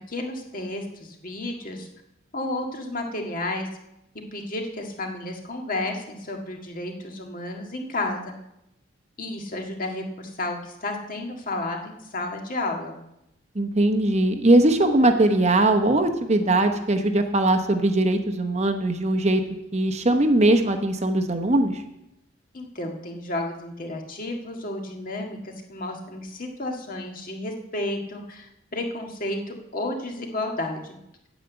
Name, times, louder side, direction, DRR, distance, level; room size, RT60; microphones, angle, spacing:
voice 1, 0.1-1.9 2.3-3.7 4.3-8.3 9.2-13.0 22.5-31.0, left 2 dB, 45° left, 2 dB, 1.8 m, -32 dB
voice 2, 13.5-19.4 19.7-21.8, right 1 dB, 35° right, 6 dB, 0.9 m, -20 dB
9.2 x 8.2 x 8.0 m, 0.85 s
head